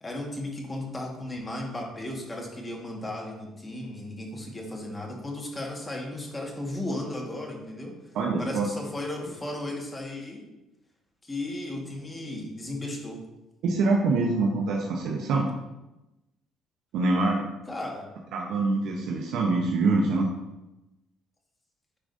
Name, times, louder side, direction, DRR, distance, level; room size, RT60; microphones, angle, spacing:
voice 1, 0.0-7.9 8.4-10.4 11.2-13.2 17.7-18.1, left 1 dB, 15° left, 0 dB, 1.5 m, -35 dB
voice 2, 8.1-8.7 13.6-15.5 16.9-17.4 18.3-20.3, right 3 dB, 75° right, -1 dB, 0.8 m, -25 dB
9.8 x 4.9 x 2.6 m, 0.97 s
cardioid pair, 110°, 0 cm